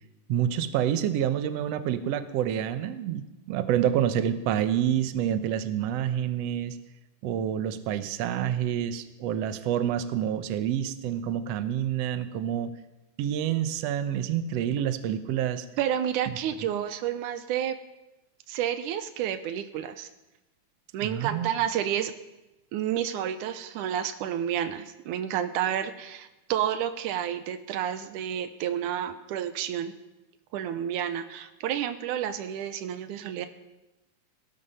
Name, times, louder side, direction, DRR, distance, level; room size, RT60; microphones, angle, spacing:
voice 1, 0.3-6.8 7.2-12.7 13.2-15.7 16.3-16.4 21.0-21.5, right 10 dB, 65° right, 11 dB, 1.8 m, -28 dB
voice 2, 15.8-17.8 18.5-20.1 20.9-22.1 22.7-29.9 30.5-33.5, right 10 dB, 85° right, 11 dB, 2.3 m, -30 dB
17.5 x 12.5 x 5.6 m, 1.0 s
omnidirectional pair, 3.5 m